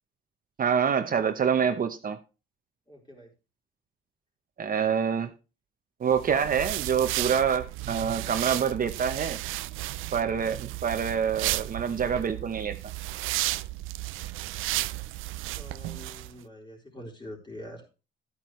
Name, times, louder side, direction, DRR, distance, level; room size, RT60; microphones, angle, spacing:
voice 1, 0.6-2.2 4.6-5.3 6.0-9.4 10.1-12.8, right 7 dB, 45° right, 0.9 m, -26 dB
voice 2, 2.9-3.3 10.1-10.4 15.5-17.8, left 1 dB, 20° left, 4.1 m, -45 dB
sound 1, 6.1-16.3, right 17 dB, 85° right, 0.4 m, -33 dB
12.0 x 9.1 x 3.2 m
cardioid pair, 90°, 20 cm